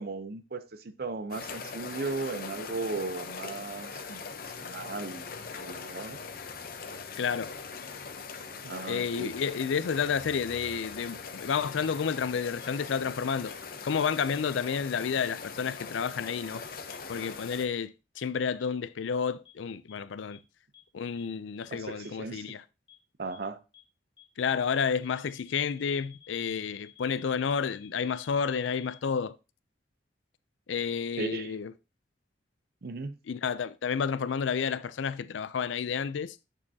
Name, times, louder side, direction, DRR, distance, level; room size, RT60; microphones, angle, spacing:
voice 1, 0.0-6.2 8.6-9.3 21.7-22.6 23.2-23.6 31.2-31.6 32.8-33.2, right 3 dB, 55° right, 0.6 m, -37 dB
sound 1, 1.3-17.7, left 5 dB, 50° left, 0.8 m, -41 dB
voice 2, 7.2-7.5 8.8-13.5 13.8-16.6 17.1-20.4 20.9-22.6 24.4-29.4 30.7-31.7 33.3-36.4, left 6 dB, 85° left, 0.4 m, -30 dB
sound 2, 12.6-12.7 13.4-13.5 14.3-14.4 15.2-15.3 16.0-16.1 16.9-17.0 17.7-17.8 18.2-18.3 18.6-18.7 19.0-19.1 19.4-19.5 19.9-20.0 20.3-20.4 20.7-20.8 21.2-21.3 21.6-21.7 22.0-22.1 22.4-22.5 22.9-23.0 23.3-23.4 23.7-23.8 24.2-24.3 24.6-29.0, left 13 dB, 25° left, 2.3 m, -54 dB
8.7 x 6.4 x 2.7 m
head